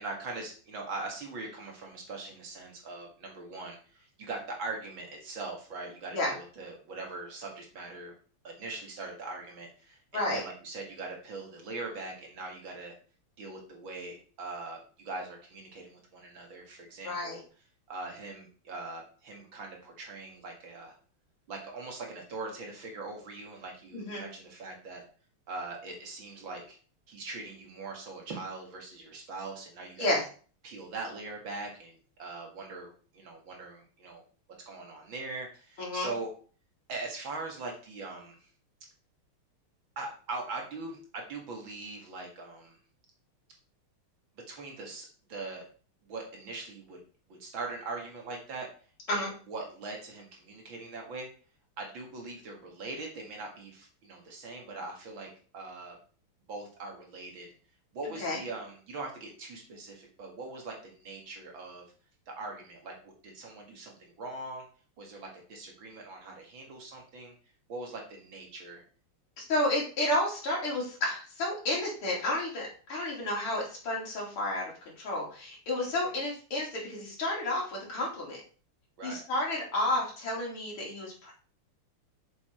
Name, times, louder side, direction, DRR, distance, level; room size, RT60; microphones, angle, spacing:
voice 1, 0.0-8.1 8.4-12.9 13.4-17.4 17.9-20.9 21.5-25.0 25.5-26.8 27.1-30.2 30.6-34.2 34.7-36.3 36.9-38.5 40.0-42.8 44.5-45.6 46.0-47.0 47.3-48.7 49.1-51.3 51.8-56.0 56.5-57.5 57.9-61.9 62.3-64.6 65.0-67.3 67.7-68.8 75.8-76.2 79.0-79.2, right 3 dB, 60° right, 1 dB, 2.7 m, -41 dB
voice 2, 17.0-17.4 23.9-24.2 30.0-30.2 35.8-36.1 49.1-49.3 58.2-58.4 69.4-78.4 79.0-81.3, left 1 dB, 75° left, -3 dB, 3.8 m, -31 dB
7.0 x 7.0 x 4.5 m, 0.40 s
omnidirectional pair, 2.4 m